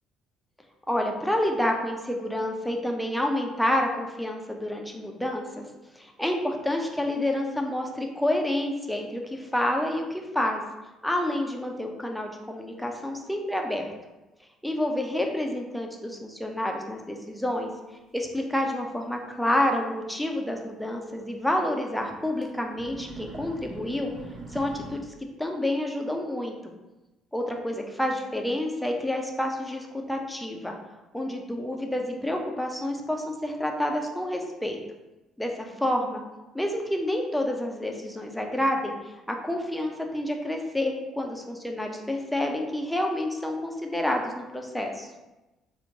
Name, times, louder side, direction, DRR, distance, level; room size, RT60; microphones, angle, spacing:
voice 1, 0.9-5.6 5.9-10.6 11.0-13.9 14.6-17.7 18.1-24.1 24.5-25.1 25.4-26.5 27.3-30.7 31.1-34.8 35.4-36.2 36.5-38.9 39.3-45.1, left 1 dB, 5° left, 2 dB, 0.4 m, -28 dB
sound 1, 18.8-18.9 19.3-19.4 20.9-21.0 21.3-21.4 22.3-22.5 22.7-25.0, right 3 dB, 55° right, 0.6 m, -42 dB
2.8 x 2.0 x 2.8 m, 1.1 s
figure-of-eight pair, 50°, 0 cm